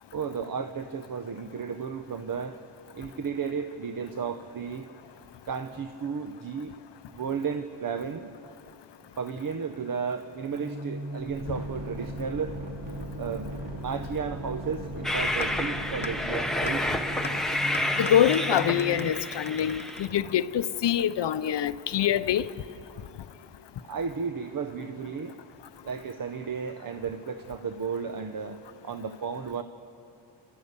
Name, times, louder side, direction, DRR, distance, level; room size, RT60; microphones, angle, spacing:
voice 1, 0.1-2.6 2.9-5.2 5.5-6.8 7.1-8.3 9.2-12.5 13.2-13.5 13.8-16.9 23.8-25.4 25.8-28.6 28.8-29.6, right 6 dB, 50° right, 8 dB, 0.7 m, -33 dB
sound 1, 10.4-19.1, right 1 dB, 70° right, 3.0 m, -37 dB
Train, 15.0-20.1, left 1 dB, ahead, 1.0 m, -30 dB
sound 2, 15.4-15.5 16.0-16.1 16.7-16.8 17.2-17.3 17.7-20.7, left 4 dB, 25° left, 0.7 m, -39 dB
voice 2, 18.0-22.5, left 10 dB, 65° left, 14 dB, 0.6 m, -25 dB
28.5 x 12.5 x 8.1 m, 2.7 s
wide cardioid pair, 165°, 44 cm